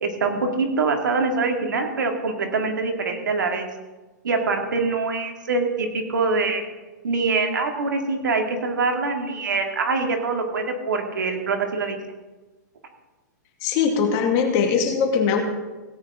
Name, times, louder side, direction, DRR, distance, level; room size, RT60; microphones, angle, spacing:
voice 1, 0.0-3.7 4.2-6.6 7.0-12.0, right 3 dB, 85° right, 4 dB, 2.2 m, -24 dB
voice 2, 13.6-15.4, left 6 dB, 40° left, 3 dB, 2.2 m, -21 dB
17.0 x 9.5 x 3.7 m, 1.2 s
hypercardioid pair, 140°, 10 cm